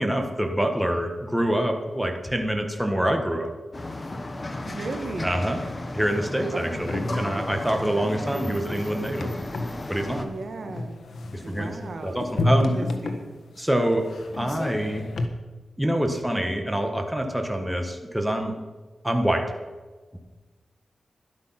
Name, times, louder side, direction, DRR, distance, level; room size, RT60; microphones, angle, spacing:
voice 1, 0.0-3.5 5.2-5.6 5.9-9.3 9.9-10.3 11.3-11.7 12.0-12.8 13.6-14.1 14.4-15.0 15.8-18.6 19.0-19.4, right 1 dB, 5° right, 4 dB, 1.5 m, -25 dB
sound 1, 3.7-10.3, left 2 dB, 30° left, 1.3 m, -35 dB
voice 2, 4.7-5.5 6.5-7.7 8.0-9.0 10.2-11.0 11.4-13.3, right 3 dB, 65° right, 6 dB, 1.5 m, -37 dB
sound 2, 6.7-15.3, left 2 dB, 80° left, 1.4 m, -31 dB
12.5 x 11.0 x 5.9 m, 1.3 s
wide cardioid pair, 115°, 0 cm